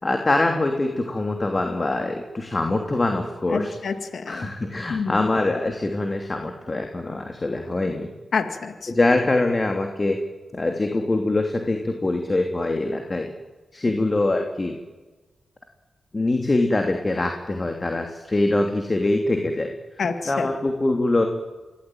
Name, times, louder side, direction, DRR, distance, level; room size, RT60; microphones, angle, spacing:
voice 1, 0.0-3.7 4.3-8.1 8.9-10.2 10.5-13.3 13.7-14.8 16.1-19.7 20.3-21.3, left 2 dB, 35° left, 4 dB, 3.0 m, -23 dB
voice 2, 3.5-4.5 4.9-5.3 8.3-8.9 20.0-20.5, left 5 dB, 70° left, 7 dB, 2.2 m, -27 dB
25.0 x 18.0 x 9.2 m, 1.2 s
supercardioid pair, 45°, 0 cm